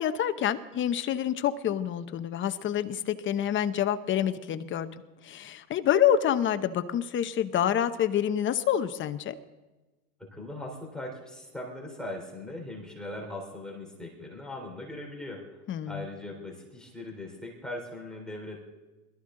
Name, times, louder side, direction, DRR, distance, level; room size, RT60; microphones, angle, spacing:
voice 1, 0.0-4.9 5.2-9.3 15.7-16.1, left 10 dB, 25° left, 11 dB, 0.8 m, -27 dB
voice 2, 10.3-15.6 15.9-18.6, left 1 dB, ahead, -2 dB, 3.4 m, -40 dB
22.0 x 13.5 x 3.8 m, 1.1 s
supercardioid pair, 125°, 44 cm